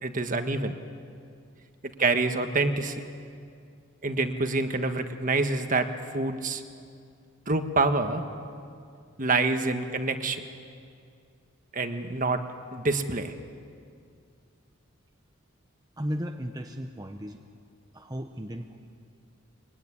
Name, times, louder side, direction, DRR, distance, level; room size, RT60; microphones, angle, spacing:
voice 1, 0.0-0.8 1.8-3.0 4.0-5.9 6.1-6.6 7.5-8.3 9.2-10.4 11.7-12.4 12.7-13.3, right 3 dB, 40° right, 7 dB, 1.5 m, -26 dB
voice 2, 16.0-17.4 17.9-18.8, equal, 20° right, 4 dB, 0.9 m, -35 dB
24.5 x 23.0 x 9.8 m, 2.4 s
head